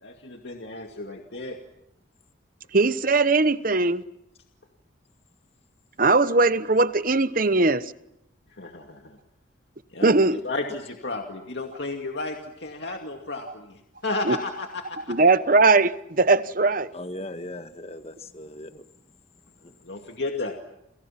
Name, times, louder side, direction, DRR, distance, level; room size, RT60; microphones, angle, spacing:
voice 1, 0.0-1.6 8.5-9.2 9.9-15.2 19.8-20.5, left 2 dB, 60° left, 2.4 m, -33 dB
voice 2, 2.7-4.0 6.0-7.8 10.0-10.4 14.3-14.4 15.1-16.9, right 3 dB, 45° right, 1.0 m, -20 dB
voice 3, 16.9-18.8 19.6-19.7, left 1 dB, 30° left, 1.6 m, -38 dB
30.0 x 28.5 x 6.0 m
head